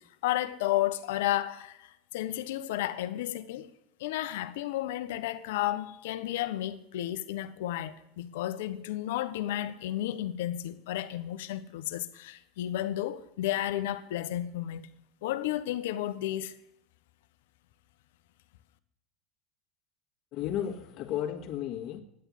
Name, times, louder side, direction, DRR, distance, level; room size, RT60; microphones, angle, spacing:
voice 1, 0.2-3.7 4.0-14.9 15.2-16.6, left 13 dB, 80° left, 1.0 m, -32 dB
voice 2, 20.3-22.0, left 10 dB, 55° left, 1.8 m, -33 dB
11.0 x 8.1 x 9.9 m
hypercardioid pair, 95°, 0 cm